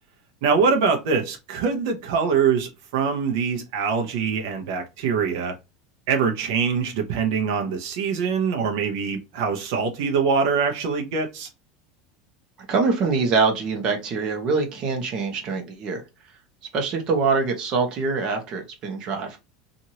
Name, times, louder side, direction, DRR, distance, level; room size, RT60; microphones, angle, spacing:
voice 1, 0.4-5.5 6.1-11.5, right 5 dB, 65° right, 0.7 m, -23 dB
voice 2, 12.7-16.0 16.7-19.4, right 4 dB, 35° right, 0.9 m, -24 dB
3.0 x 2.5 x 2.7 m
supercardioid pair, 165°, 2 cm